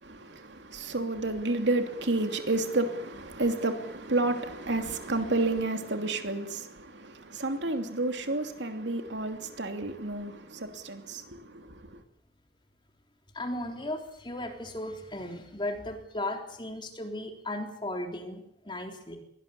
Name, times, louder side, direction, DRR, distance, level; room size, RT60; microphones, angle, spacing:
voice 1, 0.0-12.0, right 2 dB, 80° right, 2.9 m, -31 dB
voice 2, 13.3-19.2, left 1 dB, 25° left, 3.7 m, -36 dB
23.0 x 18.5 x 8.4 m
head